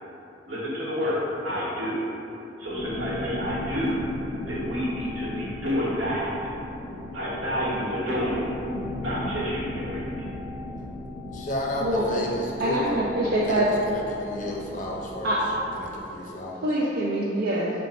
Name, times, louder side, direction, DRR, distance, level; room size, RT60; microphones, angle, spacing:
voice 1, 0.5-2.0 2.6-6.5 7.1-8.5 9.0-10.3, equal, 75° right, -7 dB, 1.1 m, -29 dB
sound 1, 2.7-16.0, left 1 dB, 10° right, 0.7 m, -36 dB
voice 2, 11.3-13.0 13.4-16.7, left 1 dB, 45° left, -3 dB, 0.5 m, -32 dB
voice 3, 12.6-13.7 15.2-15.4 16.6-17.7, right 1 dB, 55° right, -5 dB, 0.3 m, -24 dB
3.8 x 2.2 x 4.0 m, 2.9 s
head